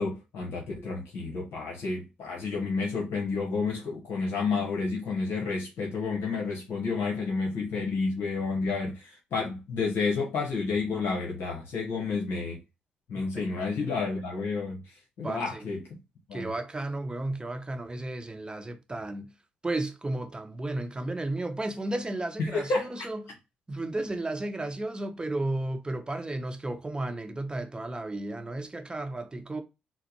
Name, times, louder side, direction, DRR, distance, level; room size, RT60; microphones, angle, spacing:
voice 1, 0.0-12.6 13.1-14.8 15.2-15.8 16.3-16.5 22.4-22.9, left 4 dB, 70° left, 1.0 m, -30 dB
voice 2, 13.1-13.7 15.2-15.7 16.3-19.3 19.6-23.3 23.7-29.6, right 2 dB, 20° right, 0.8 m, -33 dB
4.2 x 2.0 x 2.9 m
hypercardioid pair, 45°, 4 cm